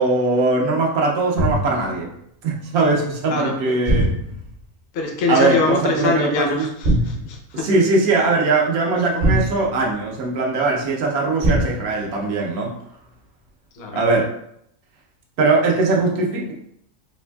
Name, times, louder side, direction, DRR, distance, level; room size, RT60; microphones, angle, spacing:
voice 1, 0.0-2.1 2.4-4.1 5.3-6.7 7.5-12.7 13.9-14.3 15.4-16.5, right 3 dB, 85° right, -1 dB, 1.2 m, -20 dB
sound 1, 1.4-1.9 3.9-4.6 6.8-7.4 9.2-10.1 11.4-12.0, right 1 dB, 55° right, 0.6 m, -21 dB
voice 2, 3.3-3.8 4.9-7.6 13.8-14.0, left 3 dB, 55° left, 2 dB, 0.7 m, -23 dB
4.2 x 2.5 x 2.2 m, 0.74 s
omnidirectional pair, 1.5 m